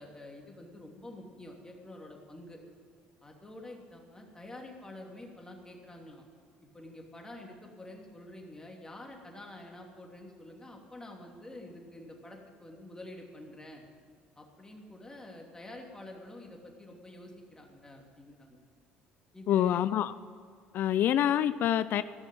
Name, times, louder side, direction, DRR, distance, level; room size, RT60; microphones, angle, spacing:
voice 1, 0.0-2.6 3.2-6.2 6.7-13.8 14.4-18.6 19.3-19.8, left 1 dB, 15° left, 2.9 m, -48 dB
voice 2, 19.5-20.1 20.7-22.0, left 11 dB, 60° left, 0.4 m, -26 dB
15.5 x 6.3 x 8.9 m
supercardioid pair, 75°, 4 cm